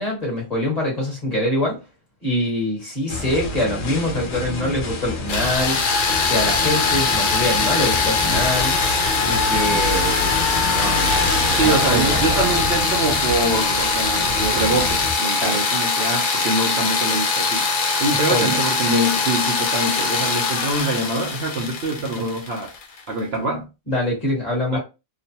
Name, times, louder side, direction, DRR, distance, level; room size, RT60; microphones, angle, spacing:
voice 1, 0.0-1.8 2.2-5.8 6.3-8.8 9.2-11.3 11.6-12.4 15.4-15.6 18.1-18.6 23.9-24.8, left 1 dB, 30° left, 1.2 m, -24 dB
sound 1, 3.1-15.1, left 2 dB, 55° left, 1.0 m, -29 dB
sound 2, 5.3-23.0, left 4 dB, 75° left, 0.4 m, -22 dB
sound 3, 7.5-12.8, equal, 90° right, 1.1 m, -28 dB
voice 2, 11.6-22.7 23.1-23.7 24.7-24.8, right 2 dB, 55° right, 0.8 m, -24 dB
3.0 x 2.1 x 2.7 m
omnidirectional pair, 1.5 m